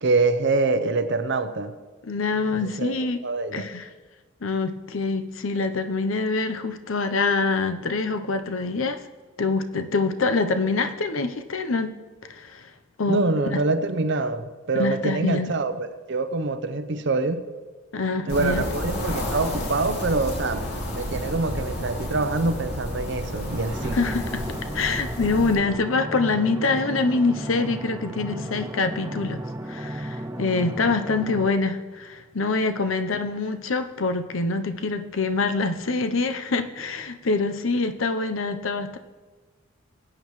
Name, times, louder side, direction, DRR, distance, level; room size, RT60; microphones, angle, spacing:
voice 1, 0.0-1.7 2.5-2.9 3.2-3.7 13.1-17.4 18.3-20.7 20.9-24.0, right 3 dB, 60° right, 10 dB, 0.8 m, -25 dB
voice 2, 2.0-3.2 3.5-3.9 4.4-9.0 9.4-12.0 12.3-12.7 13.0-13.2 13.5-13.6 14.7-15.5 17.9-18.6 23.9-24.4 24.7-29.4 29.7-39.0, left 3 dB, 70° left, 8 dB, 0.8 m, -25 dB
sound 1, 18.3-25.6, left 1 dB, 55° left, 2.6 m, -31 dB
sound 2, 23.7-31.5, right 1 dB, 15° right, 0.5 m, -34 dB
20.0 x 8.9 x 3.2 m, 1.3 s
head